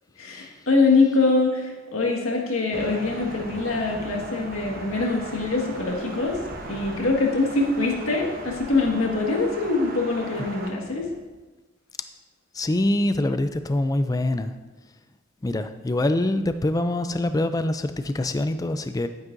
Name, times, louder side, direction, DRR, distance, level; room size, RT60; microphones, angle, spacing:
voice 1, 0.2-6.4 6.7-11.1, left 3 dB, 85° left, -1 dB, 1.8 m, -23 dB
Thunder, 2.7-10.7, right 2 dB, 45° right, 1.0 m, -38 dB
voice 2, 12.5-14.5 15.4-19.1, left 1 dB, 15° left, 10 dB, 0.3 m, -24 dB
10.5 x 9.3 x 2.6 m, 1.2 s
head